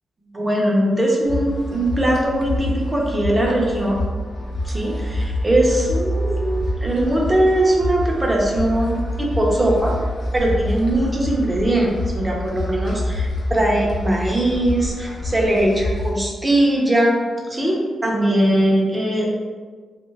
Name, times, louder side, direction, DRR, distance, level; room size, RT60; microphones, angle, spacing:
voice 1, 0.3-4.0 4.6-9.9 10.3-17.2 17.5-19.4, right 1 dB, 15° right, -2 dB, 0.4 m, -20 dB
sound 1, 1.2-16.1, left 1 dB, 50° left, 0.4 m, -26 dB
2.6 x 2.2 x 3.2 m, 1.5 s
wide cardioid pair, 165°, 0 cm